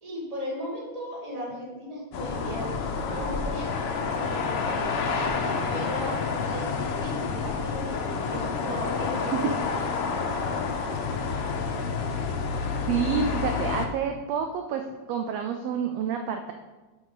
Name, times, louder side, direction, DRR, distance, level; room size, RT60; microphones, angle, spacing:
voice 1, 0.0-9.6 10.0-10.2 10.6-10.9 12.0-12.3, equal, 15° right, -6 dB, 1.7 m, -37 dB
sound 1, 2.1-13.8, left 5 dB, 80° left, 1.3 m, -29 dB
voice 2, 12.9-14.8 15.1-16.5, right 7 dB, 80° right, 5 dB, 1.5 m, -28 dB
7.7 x 6.1 x 3.9 m, 1.2 s
omnidirectional pair, 3.4 m